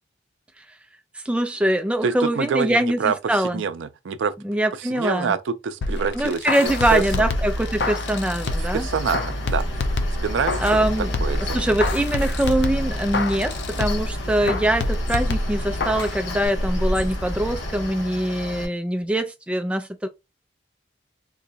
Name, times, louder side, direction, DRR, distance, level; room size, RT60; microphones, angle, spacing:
voice 1, 1.2-3.6 4.4-5.3 6.1-8.9 10.6-11.1 11.5-20.1, right 1 dB, 5° right, 0.3 m, -23 dB
voice 2, 2.0-4.3 4.8-7.0 8.6-9.6 10.2-11.6, right 6 dB, 90° right, 0.4 m, -26 dB
sound 1, 5.8-8.8 9.1-10.8 11.1-14.1 14.5-16.1 16.4-16.5, left 2 dB, 65° left, 0.4 m, -27 dB
Mechanical fan, 6.7-18.7, left 1 dB, 80° left, 1.0 m, -31 dB
Bird, 8.4-18.2, equal, 40° left, 1.3 m, -33 dB
3.8 x 2.2 x 2.6 m
head